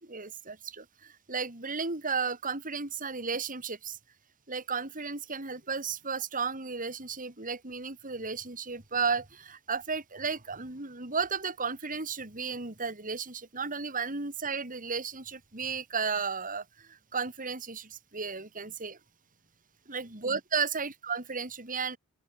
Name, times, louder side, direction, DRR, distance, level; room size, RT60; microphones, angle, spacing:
voice 1, 0.0-4.0 4.5-19.0 19.9-22.0, right 5 dB, 40° right, 3.7 m, -34 dB
open air
head